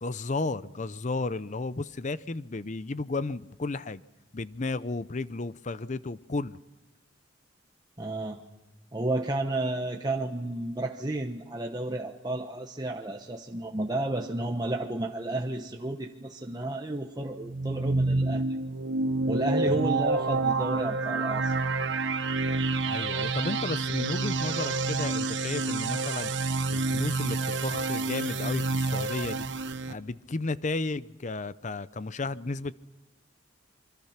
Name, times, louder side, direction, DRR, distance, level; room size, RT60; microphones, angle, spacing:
voice 1, 0.0-4.0 4.3-6.6 19.7-19.9 22.9-26.3 26.7-29.4 29.9-32.7, left 3 dB, 40° left, 0.6 m, -33 dB
voice 2, 8.0-8.4 8.9-18.4 19.3-21.5, right 2 dB, 20° right, 1.1 m, -32 dB
sound 1, 17.4-29.9, right 3 dB, 70° right, 1.0 m, -28 dB
26.5 x 24.0 x 5.9 m
head